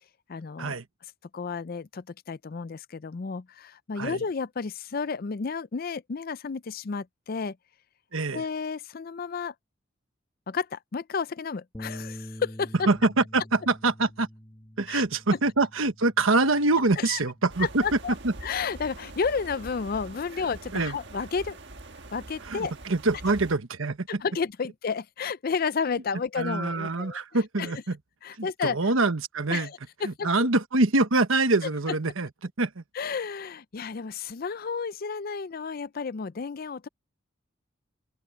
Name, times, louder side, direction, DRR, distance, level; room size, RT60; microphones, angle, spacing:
voice 1, 0.3-0.8 1.3-7.6 8.3-9.5 10.5-12.7 14.9-15.0 17.0-17.2 17.6-18.1 18.4-21.6 22.1-22.7 24.2-27.2 27.6-27.8 28.2-28.8 29.5-30.3 33.0-36.9, left 5 dB, 45° left, 0.4 m, -32 dB
voice 2, 8.1-8.4 12.9-14.3 14.8-17.8 18.2-18.3 20.7-21.0 22.4-24.2 26.4-28.0 28.4-29.7 30.0-32.8, right 3 dB, 80° right, 1.3 m, -25 dB
Bass guitar, 11.7-18.0, equal, 15° left, 1.5 m, -45 dB
sound 1, 17.5-23.6, right 2 dB, 60° right, 1.5 m, -44 dB
open air
head